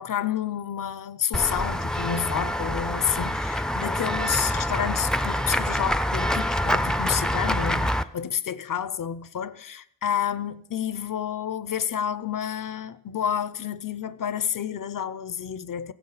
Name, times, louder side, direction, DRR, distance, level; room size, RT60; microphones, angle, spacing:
voice 1, 0.0-15.9, left 8 dB, 65° left, 0.5 m, -29 dB
Run / Walk footsteps / Bell, 1.3-8.0, equal, ahead, 0.4 m, -26 dB
16.0 x 7.1 x 3.9 m
wide cardioid pair, 60°, 35 cm